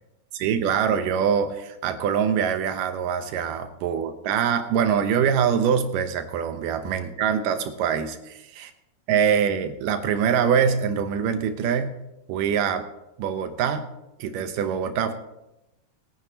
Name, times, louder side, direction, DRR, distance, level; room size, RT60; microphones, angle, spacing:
voice 1, 0.3-8.7 9.1-11.9 12.3-12.9 13.2-13.9 14.2-15.1, right 7 dB, 85° right, 8 dB, 2.5 m, -24 dB
21.0 x 9.4 x 2.9 m, 0.94 s
omnidirectional pair, 3.7 m